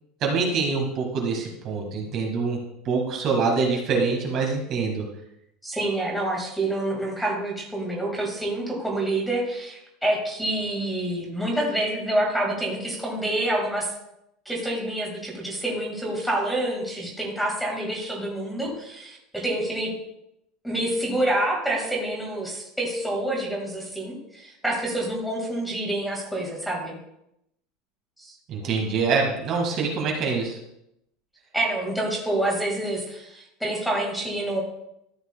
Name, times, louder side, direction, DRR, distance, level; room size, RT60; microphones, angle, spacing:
voice 1, 0.2-2.6 2.8-5.0 28.5-30.6, right 4 dB, 35° right, 0 dB, 1.7 m, -25 dB
voice 2, 5.6-13.9 14.5-19.9 20.6-27.0 28.2-28.3 31.5-34.6, right 1 dB, ahead, -1 dB, 1.8 m, -27 dB
13.5 x 8.9 x 2.2 m, 0.80 s
cardioid pair, 180°, 0 cm